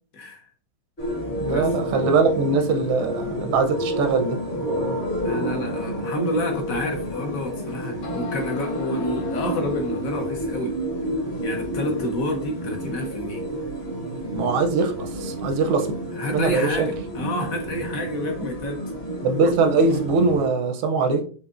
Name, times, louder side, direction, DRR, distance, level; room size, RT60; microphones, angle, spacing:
voice 1, 0.1-0.4 1.5-1.7 5.2-10.8 11.4-13.5 16.1-18.8, left 1 dB, 60° left, 4 dB, 0.9 m, -29 dB
sound 1, 1.0-20.5, right 1 dB, 40° left, 1.1 m, -29 dB
voice 2, 1.4-4.4 14.3-15.9 16.3-16.9 19.2-21.2, right 4 dB, 85° right, 6 dB, 1.6 m, -22 dB
sound 2, 6.9-7.0 7.7-7.8 8.0-10.5, left 5 dB, 90° left, 2.2 m, -40 dB
6.4 x 2.7 x 2.4 m, 0.41 s
omnidirectional pair, 2.3 m